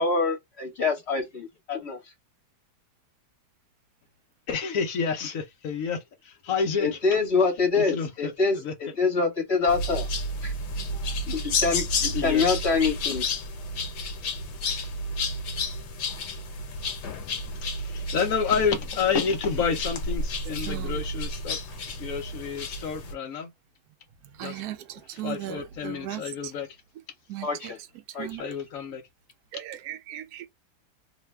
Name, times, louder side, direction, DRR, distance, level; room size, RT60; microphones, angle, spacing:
voice 1, 0.0-2.0 6.8-10.1 10.4-10.5 11.3-13.3 27.4-27.8 28.1-28.5, left 4 dB, 40° left, 1.5 m, -25 dB
voice 2, 4.5-7.0 7.7-8.7 10.9-11.2 12.1-12.5 17.7-21.6 22.0-23.5 24.4-24.6 25.1-26.7 28.4-29.0, left 6 dB, 65° left, 1.0 m, -29 dB
sound 1, 9.7-23.1, left 2 dB, 80° left, 1.4 m, -31 dB
voice 3, 24.4-24.8 25.2-26.2 27.3-27.5 28.2-28.4 29.5-30.5, right 13 dB, 70° right, 1.0 m, -36 dB
3.2 x 2.2 x 3.1 m
omnidirectional pair, 1.8 m